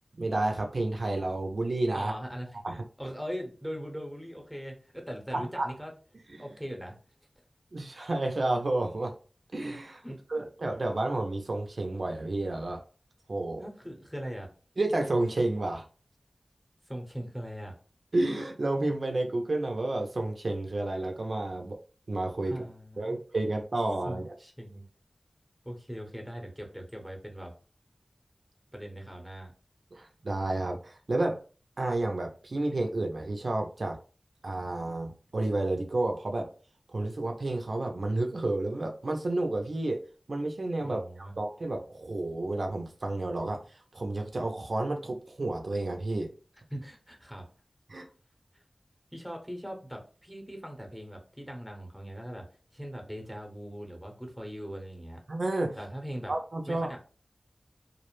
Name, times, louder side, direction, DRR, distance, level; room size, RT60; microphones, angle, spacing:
voice 1, 0.1-2.1 2.6-2.8 5.3-5.7 7.7-9.1 9.5-10.0 10.3-12.8 13.3-13.6 14.8-15.9 18.1-21.8 22.1-22.7 23.0-24.3 29.9-31.4 31.8-34.0 34.4-36.5 36.9-40.0 40.3-46.3 47.9-48.1 55.3-55.8 56.3-56.9, right 2 dB, 65° right, 2 dB, 0.4 m, -30 dB
voice 2, 1.9-2.6 3.0-5.9 6.4-7.0 10.0-10.2 13.6-14.5 16.9-17.7 22.5-23.2 24.0-24.8 25.6-27.5 28.7-29.5 40.8-41.3 46.7-47.5 48.5-48.6 49.1-52.5 52.7-55.2 55.8-56.3 56.7-57.0, equal, ahead, 2 dB, 0.8 m, -40 dB
2.4 x 2.0 x 3.0 m, 0.37 s
wide cardioid pair, 65°, 0 cm